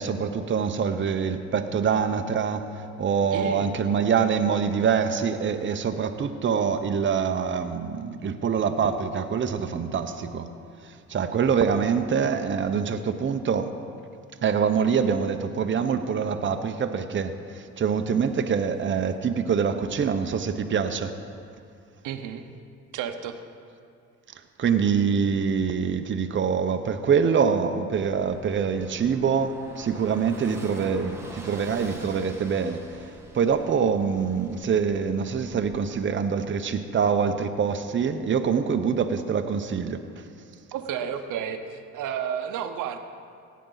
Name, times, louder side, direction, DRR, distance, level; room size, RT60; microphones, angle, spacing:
voice 1, 0.0-10.5 10.8-13.7 14.4-21.1 24.6-32.8 33.3-40.0, right 6 dB, 40° right, 7 dB, 0.8 m, -25 dB
voice 2, 3.3-3.8 22.0-22.4 22.9-23.4 40.7-43.0, right 8 dB, 90° right, 8 dB, 0.8 m, -31 dB
Car passing by / Engine, 27.9-35.8, right 1 dB, 10° right, 1.6 m, -45 dB
16.5 x 9.4 x 4.0 m, 2.3 s
cardioid pair, 90°, 30 cm